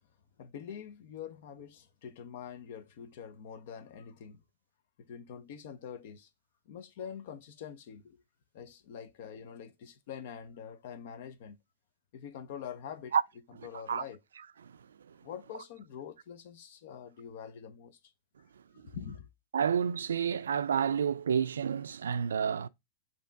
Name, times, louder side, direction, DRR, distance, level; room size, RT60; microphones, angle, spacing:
voice 1, 0.4-4.4 5.0-6.3 6.7-8.2 8.5-11.6 12.1-13.1 13.6-14.2 15.2-18.0 18.7-19.3, left 8 dB, 60° left, 0.7 m, -45 dB
voice 2, 13.6-14.0 14.6-14.8 15.1-15.2 18.8-18.9 19.5-22.7, right 7 dB, 90° right, 0.3 m, -30 dB
5.3 x 2.9 x 3.4 m
hypercardioid pair, 120°, 0 cm